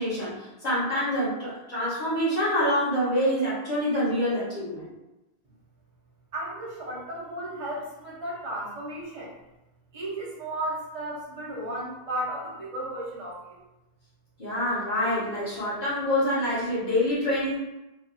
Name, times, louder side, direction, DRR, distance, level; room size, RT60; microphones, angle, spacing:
voice 1, 0.0-4.9 14.4-17.6, equal, 40° left, -10 dB, 1.5 m, -26 dB
voice 2, 6.3-9.4 9.9-13.6, right 1 dB, 35° right, -8 dB, 1.0 m, -34 dB
3.2 x 2.6 x 2.6 m, 0.98 s
omnidirectional pair, 1.1 m